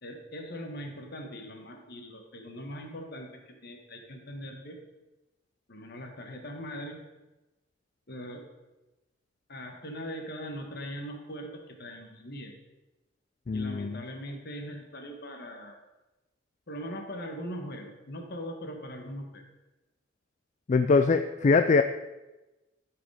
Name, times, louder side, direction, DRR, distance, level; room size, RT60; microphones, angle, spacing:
voice 1, 0.0-4.8 5.7-7.0 8.1-8.4 9.5-12.5 13.5-15.8 16.7-19.4, equal, 55° left, 3 dB, 1.6 m, -40 dB
voice 2, 13.5-14.0 20.7-21.8, left 4 dB, 40° left, 8 dB, 0.4 m, -22 dB
13.0 x 5.2 x 4.9 m, 1.1 s
head